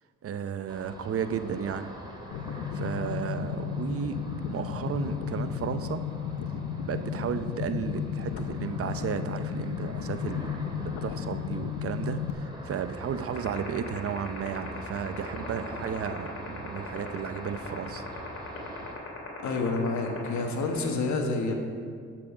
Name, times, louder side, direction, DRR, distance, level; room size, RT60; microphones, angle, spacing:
voice 1, 0.2-1.9 2.7-4.2 4.5-6.0 6.8-18.1, right 7 dB, 50° right, 10 dB, 0.6 m, -33 dB
Ocean, 0.7-18.9, right 1 dB, 15° right, 2.5 m, -44 dB
sound 1, 2.3-12.3, left 8 dB, 85° left, 0.7 m, -34 dB
sound 2, 13.4-20.9, left 5 dB, 50° left, 2.7 m, -38 dB
voice 2, 19.4-21.5, left 3 dB, 70° left, 3 dB, 1.5 m, -28 dB
11.0 x 7.7 x 4.9 m, 2.2 s
cardioid pair, 90°, 30 cm